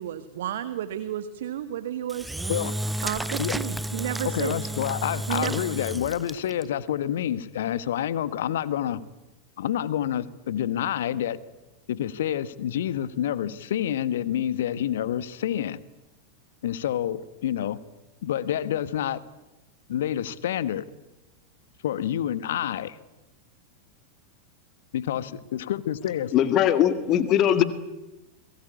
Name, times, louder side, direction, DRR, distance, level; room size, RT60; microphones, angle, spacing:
voice 1, 0.0-2.3 3.0-4.6 5.3-5.6, right 11 dB, 60° right, 11 dB, 1.6 m, -32 dB
Engine / Drill, 2.1-6.6, right 1 dB, 5° right, 0.9 m, -31 dB
voice 2, 4.2-9.0 9.6-11.4 11.9-15.8 16.6-17.8 18.2-19.2 19.9-20.8 21.8-23.0 24.9-26.3, left 10 dB, 60° left, 15 dB, 1.4 m, -28 dB
voice 3, 26.3-27.6, left 10 dB, 35° left, 11 dB, 2.0 m, -20 dB
29.5 x 22.5 x 8.6 m, 1.0 s
figure-of-eight pair, 90°, 0 cm